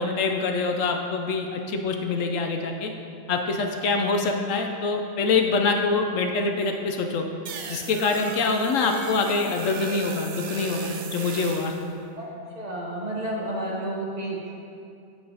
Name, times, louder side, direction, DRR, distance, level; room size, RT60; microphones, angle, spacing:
voice 1, 0.0-2.9 3.3-7.2 7.7-11.7, left 4 dB, 70° left, 3 dB, 0.9 m, -25 dB
sound 1, 7.5-11.8, right 3 dB, 90° right, 1.1 m, -35 dB
voice 2, 12.5-14.5, right 1 dB, 30° right, -5 dB, 1.1 m, -31 dB
8.5 x 7.9 x 2.8 m, 2.6 s
omnidirectional pair, 1.4 m